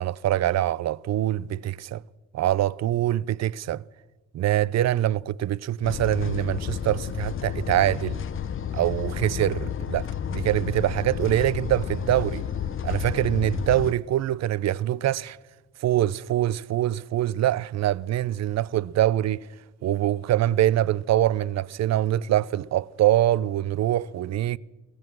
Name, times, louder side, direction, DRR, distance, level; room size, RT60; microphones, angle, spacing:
voice 1, 0.0-2.0 2.3-3.8 4.3-8.2 8.7-12.4 12.8-15.4 15.8-19.4 19.8-24.6, right 13 dB, 60° right, 0.6 m, -24 dB
sound 1, 5.8-13.9, left 8 dB, 45° left, 0.8 m, -31 dB
23.5 x 18.5 x 6.2 m
cardioid pair, 90°, 30 cm